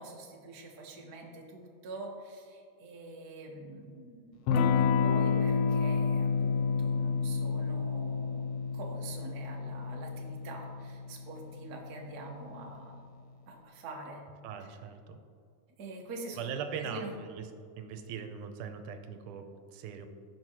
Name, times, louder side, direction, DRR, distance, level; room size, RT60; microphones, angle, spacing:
voice 1, 0.0-13.0 13.5-14.2 14.6-14.7 15.8-16.4 16.7-17.1, right 2 dB, 50° right, -1 dB, 1.2 m, -45 dB
Electric guitar / Strum, 4.5-12.8, left 5 dB, 85° left, 1.5 m, -30 dB
voice 2, 14.4-15.2 16.4-17.5 17.8-20.1, right 7 dB, 85° right, 7 dB, 2.1 m, -40 dB
15.5 x 6.1 x 3.0 m, 2.4 s
omnidirectional pair, 3.5 m